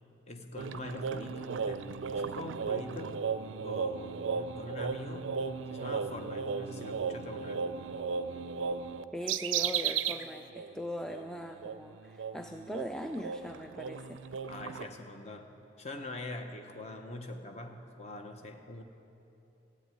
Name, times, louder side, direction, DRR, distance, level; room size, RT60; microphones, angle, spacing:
voice 1, 0.3-3.2 3.6-5.3 5.7-7.6 14.5-18.8, left 2 dB, 35° left, 5 dB, 1.0 m, -43 dB
sound 1, 0.6-10.3 10.5-10.7 11.1-14.8, right 6 dB, 80° right, 0.4 m, -35 dB
voice 2, 9.1-14.2, equal, 5° left, 4 dB, 0.3 m, -40 dB
14.0 x 8.5 x 9.1 m, 3.0 s
head